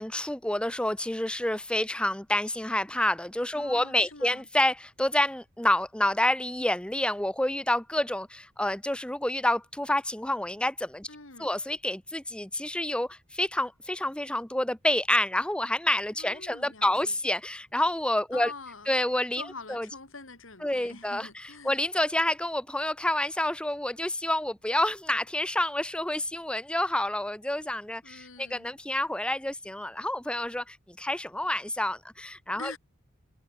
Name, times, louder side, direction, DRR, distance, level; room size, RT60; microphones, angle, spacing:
voice 1, 0.0-11.1 11.4-18.5 18.9-19.4 19.7-19.9 20.6-21.3 21.6-32.8, left 1 dB, 5° left, 0.7 m, -28 dB
voice 2, 3.6-4.5 11.1-11.5 16.2-17.2 18.3-18.9 19.4-21.8 28.0-28.7 32.6-32.8, left 3 dB, 80° left, 3.7 m, -45 dB
head